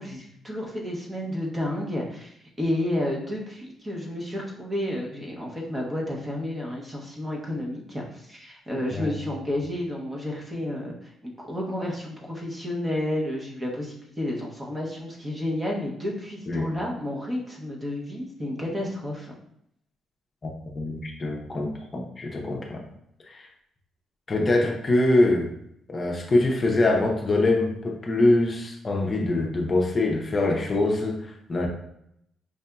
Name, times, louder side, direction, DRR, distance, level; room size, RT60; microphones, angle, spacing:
voice 1, 0.0-19.3, left 1 dB, 20° right, -2 dB, 1.0 m, -31 dB
voice 2, 20.4-22.8 23.3-23.4 24.3-25.5 25.9-31.7, left 2 dB, 35° left, 0 dB, 0.6 m, -24 dB
4.7 x 2.6 x 2.3 m, 0.74 s
cardioid pair, 90°, 0 cm